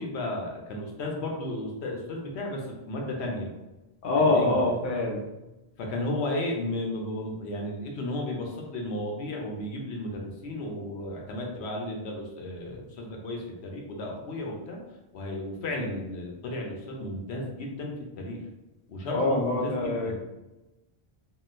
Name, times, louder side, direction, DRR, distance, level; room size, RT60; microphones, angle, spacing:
voice 1, 0.0-3.5 4.1-4.6 5.8-14.8 15.1-18.4 18.9-20.2, left 1 dB, 80° left, 0 dB, 0.9 m, -34 dB
voice 2, 4.0-5.2 19.1-20.3, left 2 dB, 60° left, -1 dB, 0.7 m, -25 dB
3.7 x 2.2 x 2.5 m, 1.0 s
omnidirectional pair, 1.1 m